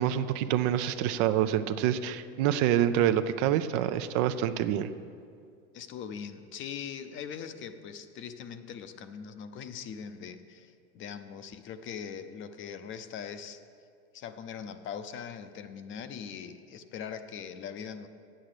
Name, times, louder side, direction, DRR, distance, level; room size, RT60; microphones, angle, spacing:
voice 1, 0.0-4.9, right 11 dB, 60° right, 11 dB, 0.6 m, -26 dB
voice 2, 5.7-13.6 14.1-18.1, left 7 dB, 40° left, 10 dB, 0.6 m, -41 dB
8.6 x 7.7 x 6.7 m, 2.3 s
supercardioid pair, 115°, 32 cm